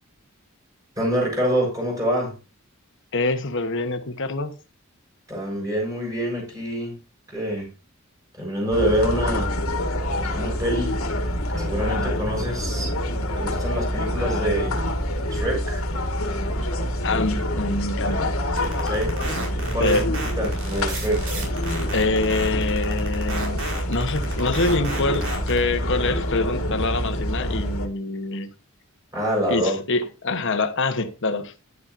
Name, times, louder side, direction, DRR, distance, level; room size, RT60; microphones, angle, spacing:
voice 1, 1.0-2.3 5.3-7.0 7.3-7.7 8.4-9.5 10.3-11.0 11.5-12.9 13.3-14.7 15.3-15.8 18.8-19.1 19.7-21.3 29.1-29.8, equal, 15° right, 6.6 m, -26 dB
voice 2, 3.1-4.5 17.0-18.4 19.8-20.1 21.9-23.6 23.9-28.5 29.5-31.5, left 3 dB, 60° left, 1.2 m, -25 dB
sound 1, 8.7-27.9, left 1 dB, 75° left, 1.8 m, -26 dB
sound 2, 18.6-25.6, right 3 dB, 80° right, 5.0 m, -32 dB
11.0 x 10.0 x 2.7 m
head